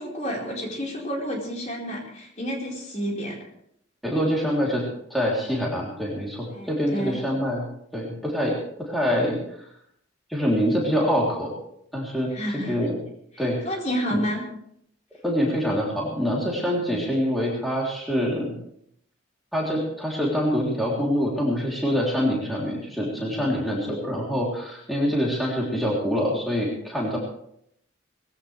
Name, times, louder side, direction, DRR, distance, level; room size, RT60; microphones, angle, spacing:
voice 1, 0.0-3.3 6.5-7.2 12.3-12.8 13.6-14.4, equal, 35° left, -2 dB, 4.5 m, -30 dB
voice 2, 4.0-4.8 5.1-7.7 7.9-9.7 10.3-11.5 11.9-12.3 12.7-13.0 13.4-13.6 14.1-14.2 15.2-18.5 19.5-27.2, equal, ahead, -4 dB, 3.3 m, -25 dB
20.0 x 16.0 x 3.4 m, 0.71 s
head